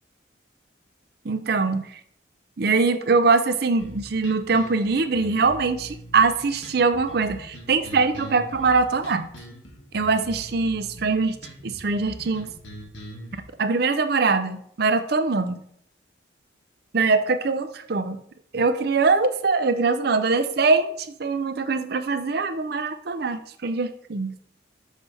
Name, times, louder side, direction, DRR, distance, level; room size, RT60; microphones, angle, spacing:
voice 1, 1.2-2.0 2.6-9.3 9.9-11.4 11.6-12.5 13.6-15.6 16.9-18.2 18.5-24.4, right 4 dB, 55° right, 10 dB, 0.5 m, -22 dB
sound 1, 3.8-13.4, equal, 85° left, 1.7 m, -42 dB
6.4 x 3.4 x 5.4 m, 0.67 s
head